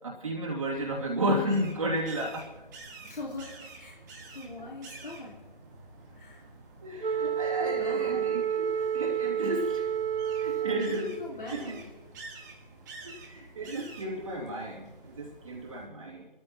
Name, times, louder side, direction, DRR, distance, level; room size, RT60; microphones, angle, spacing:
voice 1, 0.0-2.5 4.6-4.7 6.8-9.9 10.4-11.2 11.5-11.8 13.0-16.3, right 1 dB, 35° right, -2 dB, 2.8 m, -33 dB
sound 1, 0.7-15.9, right 3 dB, 20° right, 1.9 m, -49 dB
voice 2, 3.0-4.0 4.3-5.4 6.2-6.4 7.6-8.3 10.4-11.9 13.0-13.1, left 2 dB, 60° left, -4 dB, 4.1 m, -42 dB
Wind instrument woodwind instrument, 7.0-11.4, right 8 dB, 70° right, 0.7 m, -30 dB
25.5 x 14.0 x 3.0 m, 1.2 s
figure-of-eight pair, 155°, 29 cm